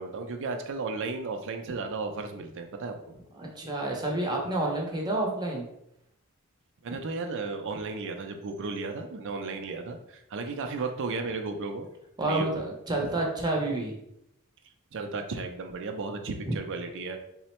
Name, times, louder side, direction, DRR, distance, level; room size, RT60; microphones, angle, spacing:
voice 1, 0.0-3.0 6.8-11.9 12.2-12.7 13.0-13.1 14.9-17.2, right 3 dB, 60° right, 5 dB, 0.5 m, -34 dB
voice 2, 3.3-5.7 12.2-13.9 16.5-16.6, right 2 dB, 20° right, -1 dB, 0.7 m, -29 dB
3.7 x 2.1 x 4.3 m, 0.80 s
head